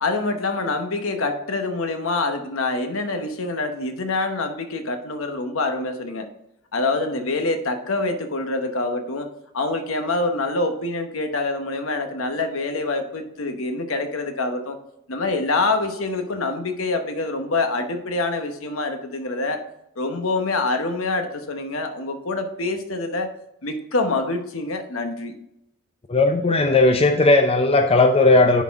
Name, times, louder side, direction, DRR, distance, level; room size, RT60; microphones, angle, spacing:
voice 1, 0.0-6.3 6.7-9.3 9.5-14.8 15.1-19.6 20.0-23.3 23.6-25.3, left 3 dB, 75° left, 6 dB, 1.0 m, -25 dB
voice 2, 26.1-28.6, left 2 dB, 30° left, 6 dB, 0.5 m, -16 dB
10.5 x 4.1 x 3.5 m, 0.81 s
head